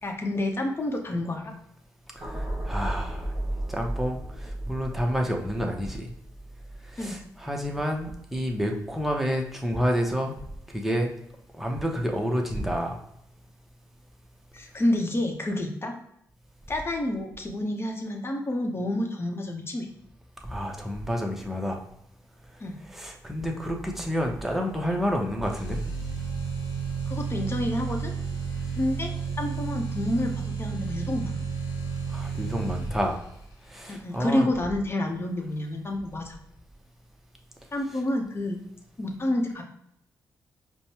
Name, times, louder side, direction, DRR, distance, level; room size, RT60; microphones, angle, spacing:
voice 1, 0.0-1.5 7.0-7.2 14.5-15.9 16.7-19.9 22.6-22.8 27.1-28.1 28.8-29.1 29.4-31.4 33.9-36.4 37.7-38.6 39.0-39.6, left 1 dB, 35° left, 3 dB, 0.9 m, -29 dB
voice 2, 2.1-3.3 3.7-6.1 6.9-10.4 10.7-11.1 11.6-13.0 20.4-21.8 22.9-25.8 32.1-33.2 33.7-34.5, equal, 5° right, 1 dB, 0.9 m, -29 dB
sound 1, 2.2-8.5 8.9-9.1, right 1 dB, 40° right, 1.1 m, -35 dB
sound 2, 25.5-33.4, right 5 dB, 85° left, 1.2 m, -32 dB
5.1 x 2.2 x 2.9 m, 0.76 s
supercardioid pair, 55°, 7 cm